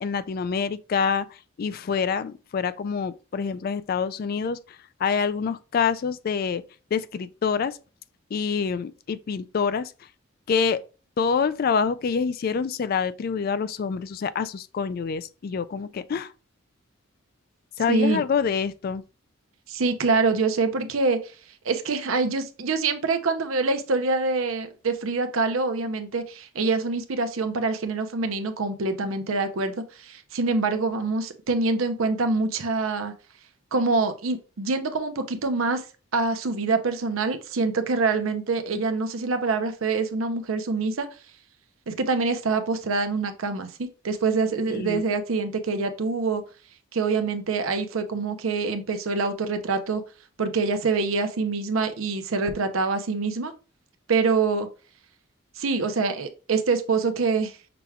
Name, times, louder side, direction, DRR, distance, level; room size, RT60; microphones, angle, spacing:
voice 1, 0.0-4.6 5.0-6.6 6.9-7.8 8.3-9.9 10.5-10.8 11.2-16.3 17.8-19.0 44.7-45.0, left 6 dB, 45° left, 0.3 m, -26 dB
voice 2, 17.9-18.2 19.7-21.2 21.6-33.1 33.7-35.8 36.1-41.1 41.9-46.4 46.9-50.0 50.4-53.5 54.1-54.7 55.6-57.5, right 4 dB, 85° right, 0.7 m, -25 dB
5.9 x 3.4 x 2.3 m
head